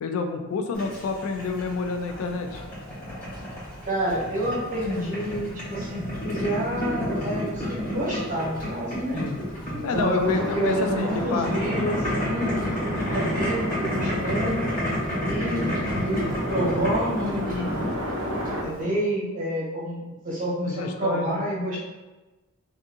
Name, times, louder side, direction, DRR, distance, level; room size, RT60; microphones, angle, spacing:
voice 1, 0.0-2.6 9.1-9.4 9.8-11.5 20.7-21.4, left 4 dB, 65° left, 6 dB, 0.3 m, -28 dB
Boiling, 0.7-18.8, equal, 40° left, 1.2 m, -30 dB
voice 2, 3.8-9.2 9.7-14.7 15.2-15.7 16.0-16.2 16.5-17.8 18.6-21.8, right 1 dB, 35° right, -6 dB, 0.8 m, -28 dB
sound 1, 10.2-18.6, equal, 60° right, 0.5 m, -33 dB
2.6 x 2.4 x 2.5 m, 1.1 s
head